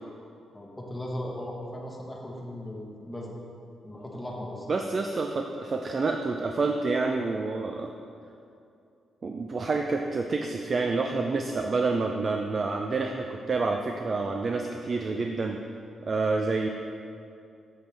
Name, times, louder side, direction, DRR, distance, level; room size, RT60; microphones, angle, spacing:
voice 1, 0.5-3.4 3.8-4.7, left 1 dB, 10° left, -2 dB, 1.3 m, -37 dB
voice 2, 4.7-7.9 9.2-15.6 16.0-16.7, right 3 dB, 45° right, 3 dB, 0.4 m, -28 dB
7.8 x 7.6 x 3.4 m, 2.6 s
cardioid pair, 95°, 0 cm